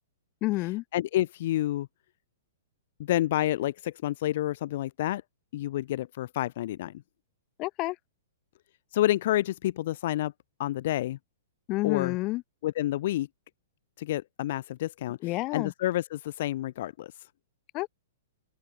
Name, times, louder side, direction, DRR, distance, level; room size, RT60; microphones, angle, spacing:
voice 1, 0.4-0.8 7.6-8.0 11.7-12.4 15.2-15.7 17.7-17.9, left 20 dB, 30° left, 3.9 m, -29 dB
voice 2, 0.9-1.9 3.0-5.2 5.5-6.9 8.9-10.3 10.6-11.2 11.8-12.2 12.6-13.3 14.0-17.1, left 14 dB, 50° left, 2.8 m, -29 dB
open air
figure-of-eight pair, 110°, 0 cm